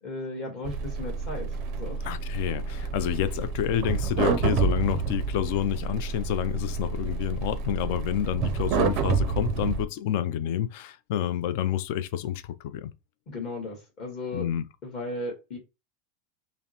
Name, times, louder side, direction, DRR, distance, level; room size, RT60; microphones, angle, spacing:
voice 1, 0.0-1.5 1.7-2.0 13.3-14.5 14.8-15.6, left 2 dB, 35° left, 1.3 m, -35 dB
sound 1, 0.6-9.8, right 5 dB, 35° right, 0.5 m, -29 dB
voice 2, 2.0-12.9 14.3-14.7, left 11 dB, 50° left, 0.4 m, -29 dB
5.5 x 2.0 x 2.9 m
supercardioid pair, 170°, 0 cm